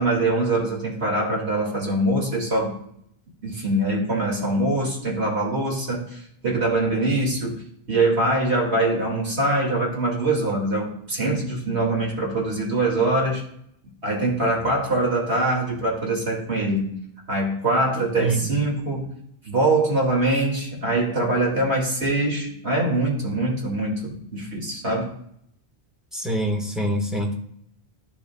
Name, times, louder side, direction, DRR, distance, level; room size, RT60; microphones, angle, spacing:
voice 1, 0.0-2.7 3.4-7.6 7.9-13.4 14.0-17.0 17.3-19.1 19.4-25.1, right 2 dB, 75° right, -2 dB, 2.5 m, -23 dB
voice 2, 18.2-18.5 26.1-27.3, right 1 dB, ahead, -1 dB, 1.4 m, -25 dB
13.5 x 6.6 x 2.3 m, 0.70 s
omnidirectional pair, 1.1 m